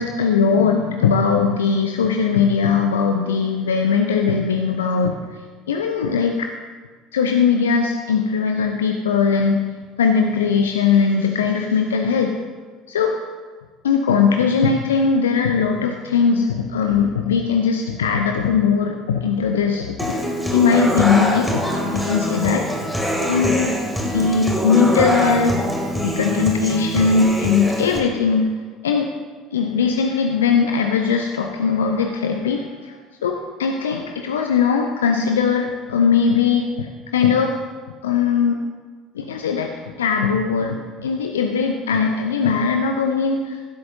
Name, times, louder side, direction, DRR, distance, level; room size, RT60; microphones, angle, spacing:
voice 1, 0.0-5.2 5.7-6.5 7.1-9.6 10.0-12.4 12.9-13.2 13.8-20.2 20.5-22.7 23.3-23.7 24.0-25.6 26.0-28.5 28.8-29.1 29.5-37.5 38.0-38.6 39.1-43.6, left 6 dB, 75° left, 5 dB, 0.6 m, -20 dB
Human voice / Acoustic guitar, 20.0-28.0, equal, ahead, 2.6 m, -23 dB
16.0 x 12.0 x 2.7 m, 1.5 s
figure-of-eight pair, 60°, 0 cm